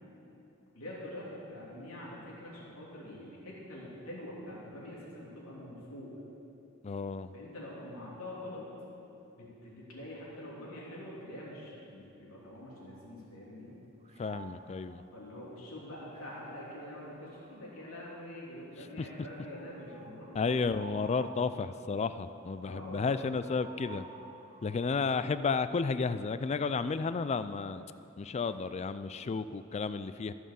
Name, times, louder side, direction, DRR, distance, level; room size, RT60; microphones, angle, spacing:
voice 1, 0.7-6.1 7.3-8.6 9.3-13.7 15.1-20.5 22.6-23.2, left 1 dB, 80° left, -5 dB, 3.2 m, -45 dB
voice 2, 6.8-7.3 14.2-15.0 20.3-24.0 24.6-27.9 28.2-30.3, left 4 dB, 30° left, 13 dB, 0.3 m, -32 dB
sound 1, 12.4-13.6 14.0-18.4 19.1-25.8 26.5-29.1, right 4 dB, 30° right, 0.6 m, -54 dB
14.5 x 6.3 x 6.9 m, 2.9 s
head